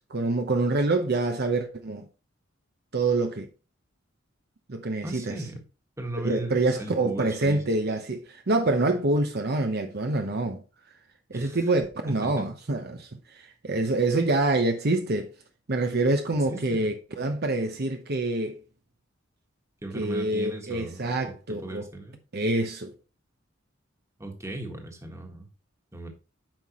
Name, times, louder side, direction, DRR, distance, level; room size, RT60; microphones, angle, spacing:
voice 1, 0.1-2.1 2.9-3.5 4.7-5.4 6.1-10.6 11.3-15.3 15.7-18.6 19.9-21.9 22.3-22.9, right 2 dB, 55° right, 0.9 m, -26 dB
voice 2, 5.0-5.6 6.0-7.6 11.3-11.6 12.2-12.4 16.5-16.9 19.8-22.2 24.2-25.5 25.9-26.1, right 2 dB, 15° right, 1.5 m, -37 dB
8.9 x 5.8 x 3.0 m
head